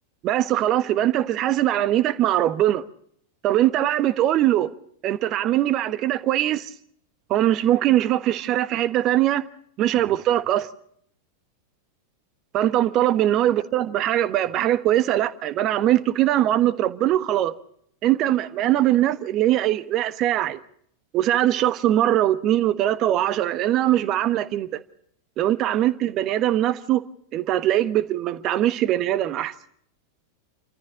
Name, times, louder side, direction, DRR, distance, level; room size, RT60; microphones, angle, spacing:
voice 1, 0.2-2.8 3.4-4.7 5.0-6.7 7.3-9.4 9.8-10.7 12.5-17.5 18.0-20.6 21.1-24.7 25.4-27.0 27.3-29.5, right 13 dB, 35° right, 1.3 m, -21 dB
29.5 x 14.5 x 6.5 m
figure-of-eight pair, 90°, 0 cm